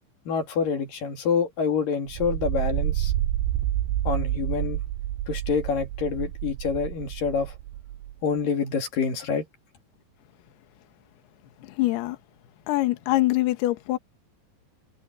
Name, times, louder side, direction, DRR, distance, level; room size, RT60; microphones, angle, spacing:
voice 1, 0.3-3.1 4.1-4.8 5.3-7.6 8.2-9.5, left 5 dB, 55° left, 3.7 m, -27 dB
sound 1, 2.1-8.1, right 13 dB, 90° right, 3.5 m, -29 dB
voice 2, 11.8-12.2 12.7-14.0, left 17 dB, 70° left, 3.0 m, -23 dB
omnidirectional pair, 5.3 m